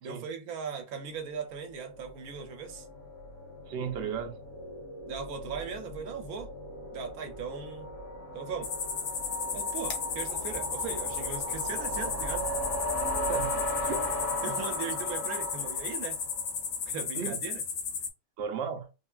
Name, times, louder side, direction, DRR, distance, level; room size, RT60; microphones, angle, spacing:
voice 1, 0.0-2.9 5.1-6.5 6.9-7.9 8.3-8.7 9.5-12.5 14.4-16.2 16.9-17.6, right 6 dB, 75° right, 1.1 m, -38 dB
sound 1, 1.4-16.6, equal, 60° left, 1.1 m, -37 dB
voice 2, 3.7-4.3 13.3-14.1 17.2-17.4 18.4-18.9, right 7 dB, 60° right, 0.7 m, -35 dB
sound 2, 8.6-18.1, left 6 dB, 85° left, 1.2 m, -34 dB
3.3 x 2.3 x 2.3 m
omnidirectional pair, 1.6 m